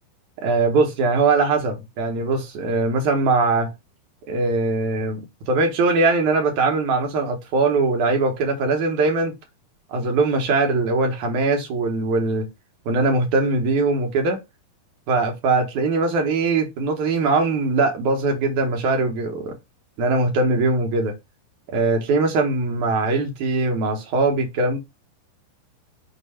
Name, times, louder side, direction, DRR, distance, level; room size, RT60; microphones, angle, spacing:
voice 1, 0.4-3.7 4.3-9.3 9.9-12.5 12.9-14.4 15.1-19.5 20.0-21.1 21.7-24.8, right 3 dB, 70° right, 1.9 m, -21 dB
6.7 x 2.8 x 5.5 m
omnidirectional pair, 4.7 m